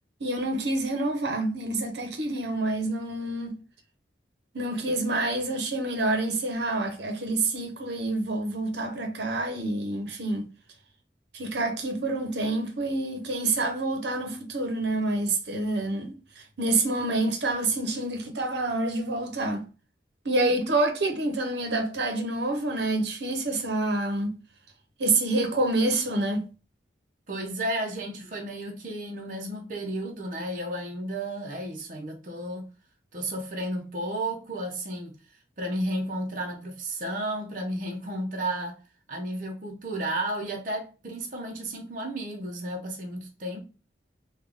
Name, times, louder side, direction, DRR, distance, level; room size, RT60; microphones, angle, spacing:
voice 1, 0.2-3.5 4.5-10.5 11.3-19.6 20.2-24.4 25.0-26.4, right 2 dB, 80° right, 0.9 m, -27 dB
voice 2, 27.3-32.7 33.1-38.8 39.1-43.6, right 1 dB, 45° right, 0.7 m, -33 dB
3.6 x 2.4 x 3.4 m
head